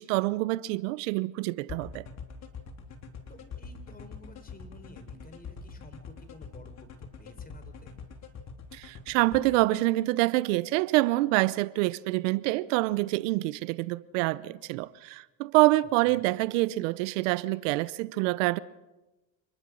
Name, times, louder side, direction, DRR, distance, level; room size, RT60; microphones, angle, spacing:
voice 1, 0.0-2.1 8.7-18.6, right 19 dB, 85° right, 0.7 m, -26 dB
sound 1, 1.7-9.4, left 6 dB, 45° left, 3.7 m, -43 dB
voice 2, 3.3-8.0 16.1-16.3, left 2 dB, 25° left, 4.2 m, -52 dB
27.0 x 21.0 x 6.3 m
supercardioid pair, 80°, 37 cm